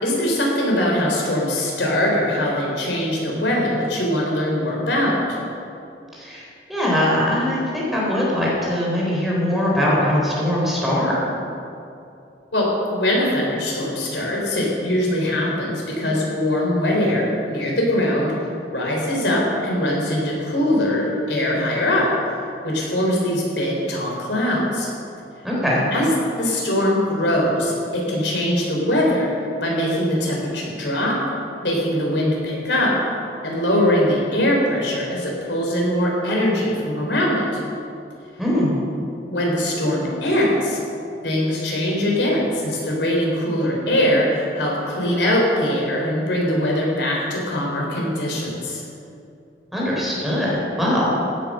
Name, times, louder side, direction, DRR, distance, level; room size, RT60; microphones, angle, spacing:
voice 1, 0.0-5.4 12.5-22.1 22.6-24.9 25.9-26.1 26.4-29.3 29.6-31.2 31.6-32.9 33.4-37.5 39.3-40.8 41.2-48.8, left 1 dB, 85° left, -2 dB, 3.8 m, -22 dB
voice 2, 6.2-11.2 25.4-25.9 38.4-38.8 49.7-51.1, left 1 dB, ahead, -5 dB, 3.9 m, -21 dB
15.5 x 9.4 x 6.3 m, 2.6 s
head